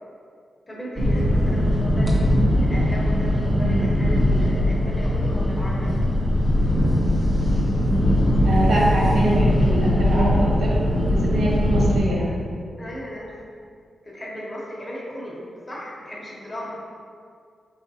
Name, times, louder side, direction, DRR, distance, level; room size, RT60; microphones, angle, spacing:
voice 1, 0.7-6.1 12.8-13.4 14.0-16.7, equal, 20° left, -5 dB, 0.9 m, -35 dB
sound 1, 1.0-12.0, left 1 dB, 10° right, 0.7 m, -20 dB
voice 2, 8.4-12.3, right 1 dB, 85° right, -5 dB, 1.2 m, -24 dB
5.0 x 3.2 x 2.8 m, 2.2 s
wide cardioid pair, 155°, 0 cm